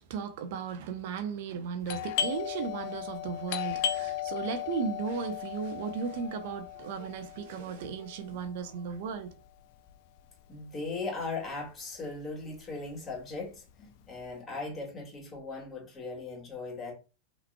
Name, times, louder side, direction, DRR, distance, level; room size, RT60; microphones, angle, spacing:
voice 1, 0.0-9.3, right 6 dB, 50° right, 0.6 m, -36 dB
Doorbell, 1.8-11.2 11.5-11.6 12.2-12.6 12.9-14.3, left 10 dB, 50° left, 0.4 m, -36 dB
voice 2, 10.5-16.9, left 3 dB, 20° left, 2.1 m, -38 dB
5.6 x 3.1 x 2.2 m
figure-of-eight pair, 90°, 0 cm